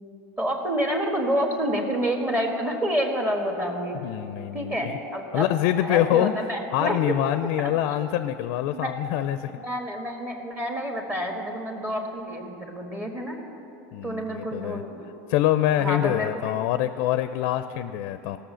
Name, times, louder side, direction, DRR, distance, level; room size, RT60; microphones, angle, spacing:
voice 1, 0.4-4.0 4.5-5.5 5.8-7.0 7.6-7.7 8.7-8.9 9.6-13.3 14.0-15.0 15.8-16.6, equal, 20° right, 2 dB, 1.5 m, -28 dB
voice 2, 4.0-4.8 5.3-6.3 6.7-9.5 13.9-14.8 15.3-18.4, left 13 dB, 65° left, 12 dB, 0.5 m, -25 dB
16.0 x 6.7 x 6.3 m, 3.0 s
supercardioid pair, 120°, 9 cm